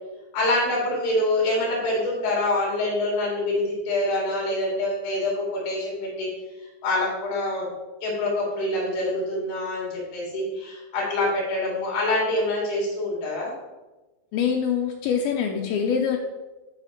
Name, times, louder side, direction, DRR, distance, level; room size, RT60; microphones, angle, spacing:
voice 1, 0.3-6.3 6.8-7.7 8.0-13.5, left 1 dB, 65° left, -4 dB, 4.5 m, -25 dB
voice 2, 14.3-16.2, left 7 dB, 90° left, 2 dB, 2.1 m, -24 dB
12.5 x 4.8 x 3.0 m, 1.1 s
omnidirectional pair, 5.0 m